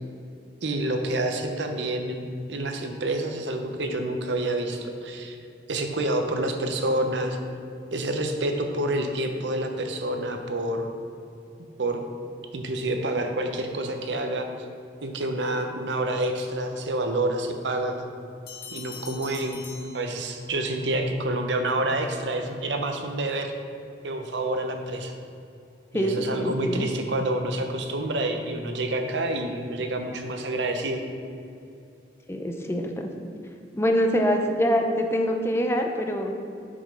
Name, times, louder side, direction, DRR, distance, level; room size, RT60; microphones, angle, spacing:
voice 1, 0.6-5.4 5.7-7.4 7.9-10.9 11.8-12.0 12.5-14.5 15.0-18.0 18.7-19.6 19.9-23.5 24.0-25.1 25.9-31.0, right 1 dB, 85° right, 5 dB, 0.8 m, -28 dB
sound 1, 18.5-20.7, left 6 dB, 55° left, 1.1 m, -43 dB
voice 2, 25.9-26.9 32.3-33.1 33.7-36.5, equal, 15° left, 3 dB, 0.5 m, -25 dB
6.9 x 5.2 x 5.3 m, 2.5 s
head